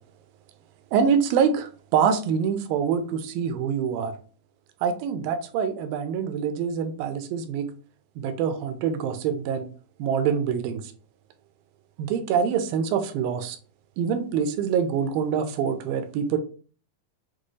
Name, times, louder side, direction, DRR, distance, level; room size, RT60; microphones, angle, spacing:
voice 1, 0.9-4.1 4.8-7.7 8.2-9.7 10.0-10.9 12.0-13.6 14.0-16.4, right 7 dB, 85° right, 9 dB, 2.4 m, -25 dB
6.1 x 2.2 x 3.1 m, 0.39 s
omnidirectional pair, 4.1 m